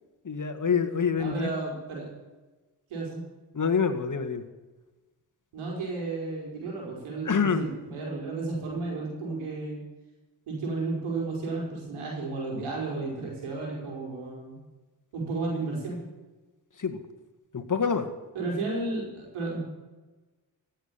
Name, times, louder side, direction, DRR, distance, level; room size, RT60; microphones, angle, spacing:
voice 1, 0.2-1.5 3.5-4.4 7.2-7.6 16.8-17.0 17.5-18.1, left 6 dB, 40° left, 6 dB, 2.1 m, -26 dB
voice 2, 1.2-2.1 2.9-3.2 5.5-9.8 10.5-14.6 15.1-16.0 18.3-19.6, right 3 dB, 80° right, -2 dB, 4.8 m, -33 dB
16.5 x 7.7 x 8.6 m, 1.2 s
supercardioid pair, 45°, 48 cm